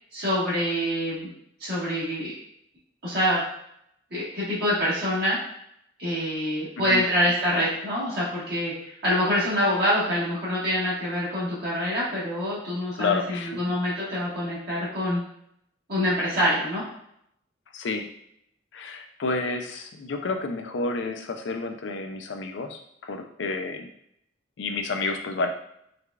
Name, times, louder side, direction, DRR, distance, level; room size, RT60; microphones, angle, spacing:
voice 1, 0.1-1.3 1.6-2.3 3.0-3.4 4.1-5.4 6.0-15.2 15.9-16.8, equal, 55° right, -9 dB, 1.4 m, -25 dB
voice 2, 13.0-13.6 17.7-18.1 18.7-23.9 24.6-25.5, left 3 dB, 75° left, 5 dB, 0.4 m, -30 dB
4.8 x 2.3 x 2.4 m, 0.72 s
head